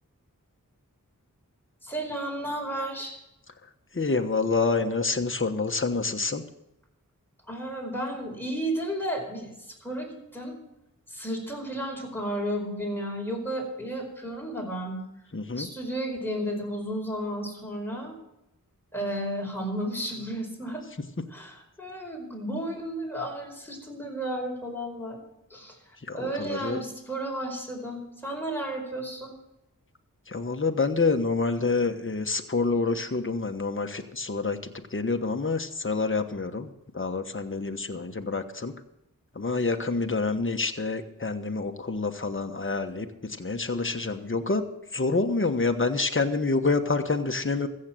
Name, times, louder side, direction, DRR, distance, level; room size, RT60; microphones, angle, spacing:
voice 1, 1.8-3.2 7.5-10.6 11.1-15.0 15.6-18.2 18.9-20.8 21.3-25.2 25.5-29.3, right 1 dB, 5° left, 0 dB, 4.8 m, -33 dB
voice 2, 3.9-6.4 15.3-15.7 26.1-26.8 30.3-38.7 39.3-44.7 44.9-47.7, left 3 dB, 40° left, 6 dB, 1.2 m, -27 dB
15.0 x 7.7 x 7.6 m, 0.86 s
wide cardioid pair, 40°, 33 cm